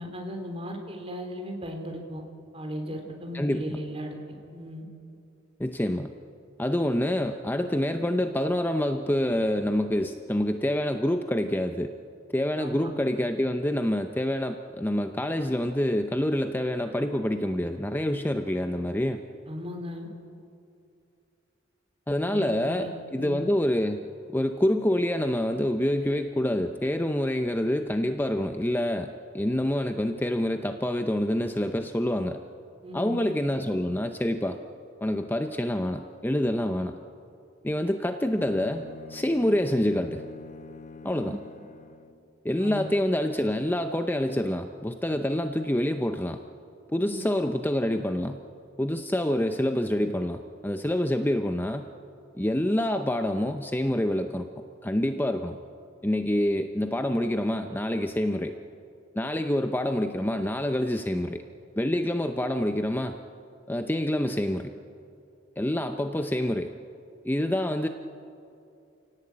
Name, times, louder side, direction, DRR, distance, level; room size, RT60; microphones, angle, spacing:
voice 1, 0.0-2.2 2.5-4.8 12.6-12.9 19.4-20.1 22.2-23.5 32.8-33.2 41.2-41.3 42.6-42.9 47.0-47.2, equal, 30° right, 3 dB, 3.5 m, -37 dB
voice 2, 3.3-3.8 5.6-6.1 6.6-11.9 12.3-19.2 22.1-24.0 24.3-32.4 32.9-34.6 35.0-37.0 37.6-38.8 39.1-40.2 41.0-41.4 42.4-46.4 46.9-48.4 48.8-51.9 52.3-54.5 54.8-55.6 56.0-58.5 59.2-61.4 61.8-63.2 63.7-64.7 65.6-66.7 67.2-67.9, left 1 dB, 10° left, 6 dB, 0.7 m, -27 dB
Bowed string instrument, 38.2-42.3, left 4 dB, 40° left, 1.0 m, -46 dB
28.5 x 17.5 x 8.7 m, 2.6 s
head